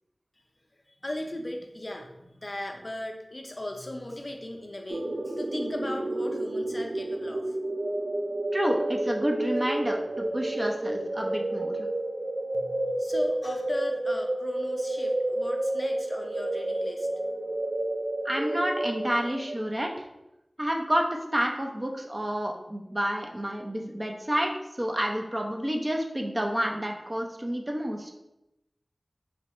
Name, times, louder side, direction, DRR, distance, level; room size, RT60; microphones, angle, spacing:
voice 1, 1.0-7.5 12.5-17.1, left 1 dB, 40° left, 3 dB, 0.5 m, -37 dB
sound 1, 4.9-19.6, right 1 dB, 85° right, 0.3 m, -30 dB
voice 2, 8.5-11.9 18.2-20.0 20.6-24.5 24.8-28.1, equal, 30° right, 1 dB, 0.5 m, -29 dB
3.2 x 2.7 x 4.1 m, 0.90 s
wide cardioid pair, 55°, 0 cm